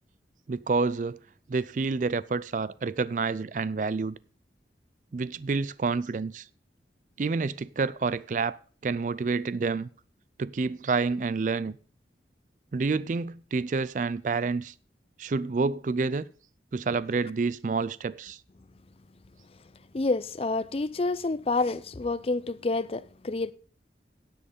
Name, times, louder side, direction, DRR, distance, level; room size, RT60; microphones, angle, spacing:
voice 1, 0.5-1.2 1.5-4.2 5.1-6.5 7.2-8.6 8.8-9.9 10.4-11.8 12.7-14.7 15.2-16.3 16.7-18.4, right 4 dB, 45° right, 0.4 m, -28 dB
voice 2, 19.9-23.5, left 3 dB, 35° left, 0.5 m, -28 dB
10.0 x 7.9 x 5.2 m
head